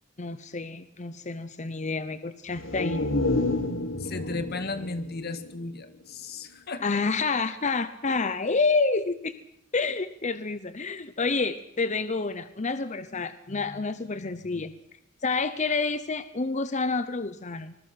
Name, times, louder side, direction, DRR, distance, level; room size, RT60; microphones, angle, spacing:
voice 1, 0.2-3.0 6.8-9.3 9.7-14.8 15.2-17.7, left 4 dB, 35° left, 12 dB, 0.9 m, -28 dB
sound 1, 2.5-6.2 6.6-6.7, left 2 dB, 80° left, 2.0 m, -30 dB
voice 2, 4.0-6.8, left 3 dB, 55° left, 10 dB, 1.7 m, -35 dB
25.5 x 21.0 x 5.9 m, 0.72 s
head